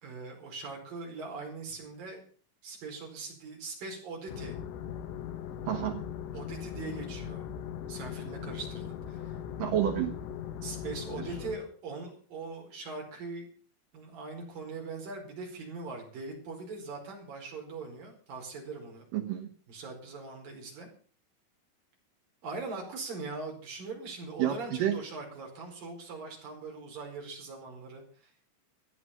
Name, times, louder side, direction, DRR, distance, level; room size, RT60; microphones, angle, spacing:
voice 1, 0.0-2.2 2.6-4.5 6.3-7.5 7.9-9.4 10.6-13.5 13.9-19.1 19.7-20.9 22.4-28.3, right 4 dB, 45° right, 0 dB, 6.1 m, -41 dB
sound 1, 4.3-11.6, left 9 dB, 70° left, 3.1 m, -39 dB
voice 2, 5.7-6.0 9.6-10.1 19.1-19.5 24.4-25.0, right 10 dB, 85° right, 5 dB, 1.9 m, -29 dB
15.5 x 9.5 x 7.3 m, 0.42 s
omnidirectional pair, 5.9 m